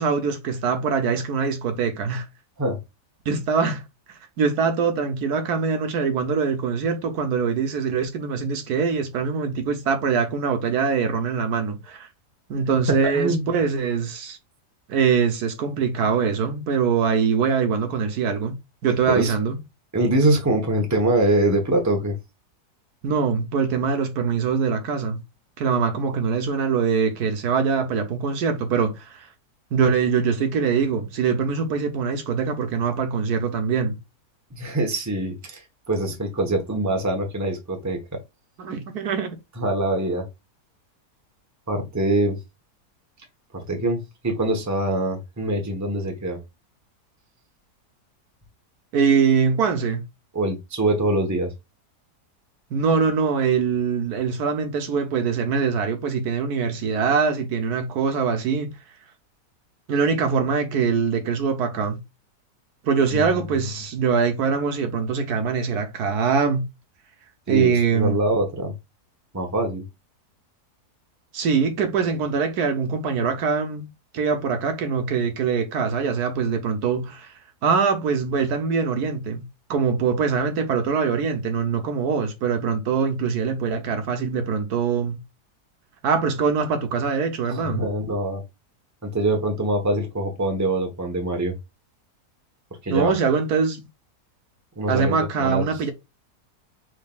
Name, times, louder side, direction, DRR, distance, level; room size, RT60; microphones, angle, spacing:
voice 1, 0.0-2.3 3.3-12.1 12.5-14.4 14.9-18.5 18.8-19.6 23.0-25.2 25.6-29.3 29.7-34.0 38.6-39.4 48.9-50.0 52.7-58.7 59.9-62.0 62.8-66.7 67.5-68.2 71.3-73.9 74.1-77.3 77.6-79.4 79.7-85.2 86.0-87.8 92.9-93.9 94.9-95.9, right 5 dB, 75° right, 1.4 m, -23 dB
voice 2, 12.9-13.5 19.1-19.3 19.9-22.2 34.5-38.2 39.6-40.3 41.7-42.4 43.5-46.4 50.3-51.5 63.1-63.3 67.5-68.7 69.3-69.8 87.5-88.4 89.0-91.5 92.8-93.1 94.8-95.7, right 1 dB, 15° right, 0.9 m, -24 dB
5.3 x 3.7 x 2.4 m
omnidirectional pair, 1.7 m